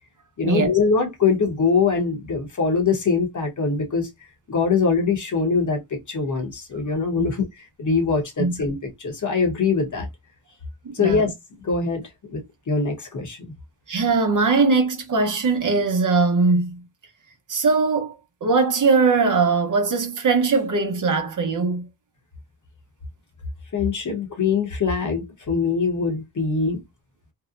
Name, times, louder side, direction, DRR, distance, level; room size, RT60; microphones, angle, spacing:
voice 1, 0.4-4.1 4.5-7.4 7.8-10.1 10.9-11.3 11.6-13.5 23.7-26.8, left 5 dB, 50° left, 0.9 m, -23 dB
voice 2, 10.8-11.3 13.9-16.8 17.5-18.1 18.4-21.9, right 4 dB, 50° right, 0.7 m, -20 dB
2.7 x 2.1 x 2.3 m
wide cardioid pair, 90°, 39 cm